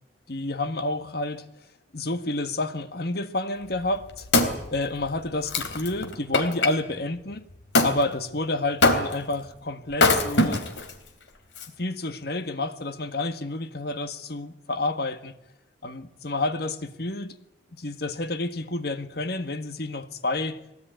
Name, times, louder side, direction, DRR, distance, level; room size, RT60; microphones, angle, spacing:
voice 1, 0.3-1.4 1.9-4.3 4.7-7.5 7.8-10.6 11.8-15.4 15.8-17.4 17.7-20.6, left 2 dB, 60° left, 1.6 m, -29 dB
Wood, 3.7-6.7 7.7-8.0 8.8-9.3 9.9-10.9 11.6-11.7, left 2 dB, 85° left, 3.4 m, -23 dB
23.0 x 18.0 x 9.2 m
head